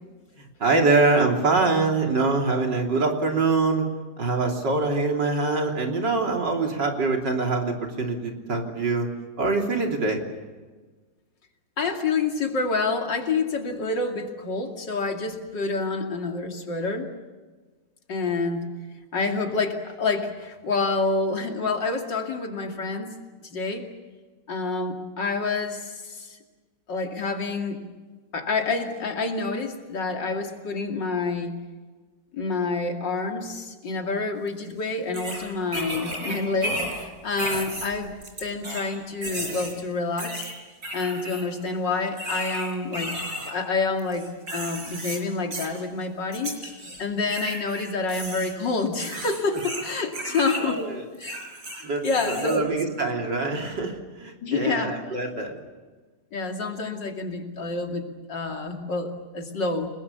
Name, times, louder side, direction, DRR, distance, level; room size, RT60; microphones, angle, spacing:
voice 1, 0.6-3.8 4.2-9.1 9.4-10.2 50.6-50.9 51.8-55.6, right 3 dB, 70° right, 2 dB, 3.9 m, -24 dB
voice 2, 11.8-17.1 18.1-18.7 19.1-23.2 23.5-23.9 24.5-26.4 26.9-27.8 28.3-31.6 32.3-38.1 38.4-40.5 40.9-43.1 43.4-46.6 47.0-50.8 51.2-51.4 52.0-52.7 54.4-54.9 56.3-59.9, left 3 dB, 75° left, 3 dB, 3.2 m, -28 dB
sound 1, 34.5-34.6 35.1-37.1 37.4-38.9 39.2-39.7 40.2-41.4 42.2-43.5 44.0-45.2 45.5-45.8 46.3-47.0 47.3-50.6 51.1-52.6, right 1 dB, 55° right, 5.4 m, -34 dB
30.0 x 20.5 x 7.0 m, 1.3 s
omnidirectional pair, 2.0 m